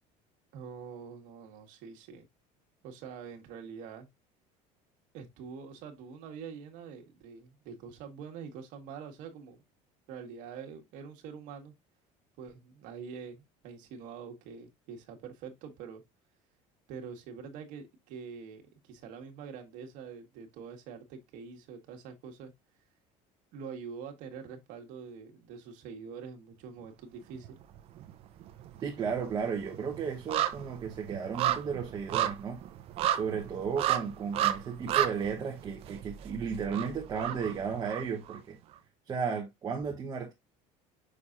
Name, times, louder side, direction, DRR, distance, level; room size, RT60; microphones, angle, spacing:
voice 1, 0.5-2.3 2.8-4.1 5.1-9.6 10.1-11.7 12.4-16.0 16.9-22.5 23.5-27.6, right 6 dB, 60° right, 1.6 m, -45 dB
sound 1, 27.4-28.1 28.4-38.4 38.7-38.8, right 12 dB, 40° right, 0.6 m, -33 dB
voice 2, 28.8-32.6 33.1-38.6 39.1-40.3, right 6 dB, 25° right, 1.0 m, -34 dB
6.6 x 5.6 x 2.5 m
cardioid pair, 170°, 15 cm